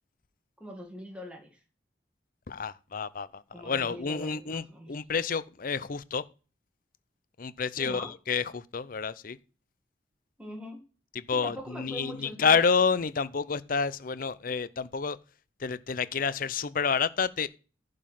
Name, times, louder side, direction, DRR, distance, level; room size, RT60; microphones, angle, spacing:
voice 1, 0.6-1.6 3.5-4.9 7.8-8.1 10.4-10.8 11.3-12.6, equal, 5° right, 1.9 m, -42 dB
voice 2, 2.5-6.2 7.4-9.4 11.3-15.2 15.6-17.5, left 5 dB, 50° left, 0.6 m, -29 dB
11.0 x 5.3 x 5.8 m
head